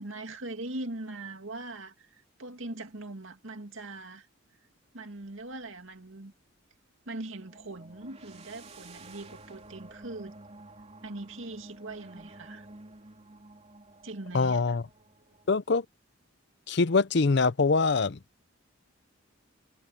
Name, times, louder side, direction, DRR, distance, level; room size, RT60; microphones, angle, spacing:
voice 1, 0.0-4.3 4.9-6.3 7.1-10.3 11.0-12.7 14.0-14.6, right 2 dB, 70° right, 2.3 m, -41 dB
sound 1, 7.3-15.6, right 2 dB, 30° right, 3.3 m, -51 dB
voice 2, 14.3-14.8 15.5-15.9 16.7-18.2, left 4 dB, 55° left, 0.6 m, -24 dB
head